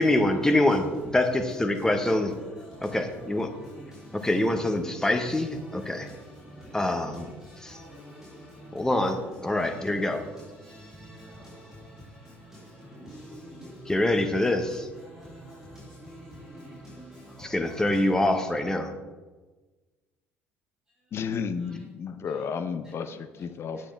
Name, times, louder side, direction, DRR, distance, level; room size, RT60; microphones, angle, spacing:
voice 1, 0.0-2.3 2.9-3.5 4.1-6.1 6.7-7.3 7.6-7.8 8.7-10.2 13.9-14.9 17.4-18.9, left 1 dB, 10° left, 1.0 m, -25 dB
voice 2, 1.9-2.7 3.2-4.6 4.9-18.1 21.6-21.8 22.3-22.6 22.8-23.4, equal, 5° right, 2.5 m, -47 dB
voice 3, 21.1-23.8, left 6 dB, 40° left, 0.7 m, -32 dB
9.0 x 7.3 x 3.5 m
figure-of-eight pair, 55°, 7 cm